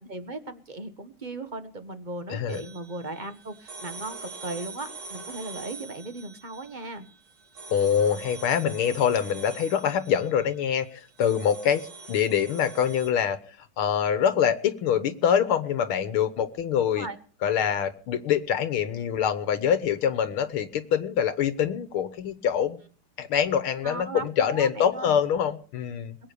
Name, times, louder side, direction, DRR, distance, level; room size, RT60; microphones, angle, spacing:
voice 1, 0.0-7.1 16.9-17.2 23.8-25.2, right 2 dB, 25° right, 9 dB, 1.2 m, -37 dB
voice 2, 2.3-2.6 7.7-17.1 17.4-22.8 23.2-26.1, left 8 dB, 80° left, 11 dB, 1.9 m, -25 dB
sound 1, 2.5-13.1, right 4 dB, 75° right, 3.8 m, -44 dB
22.0 x 8.5 x 6.9 m, 0.41 s
omnidirectional pair, 2.3 m